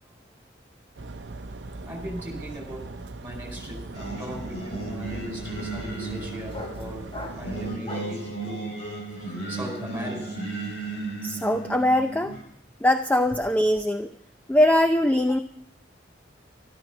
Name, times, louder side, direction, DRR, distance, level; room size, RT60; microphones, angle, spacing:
sound 1, 1.0-7.8, right 2 dB, 70° right, 0.8 m, -39 dB
sound 2, 1.5-1.8 2.0-8.3, left 1 dB, 35° left, 3.2 m, -43 dB
voice 1, 1.8-2.8 3.2-7.1 7.4-8.7 9.1-10.3, equal, 10° right, 1 dB, 4.6 m, -38 dB
Singing, 3.9-12.4, right 2 dB, 70° left, 5.7 m, -35 dB
voice 2, 11.2-12.3 12.8-14.1 14.5-15.4, left 1 dB, 10° left, 6 dB, 0.6 m, -21 dB
13.5 x 13.0 x 5.9 m, 0.73 s
head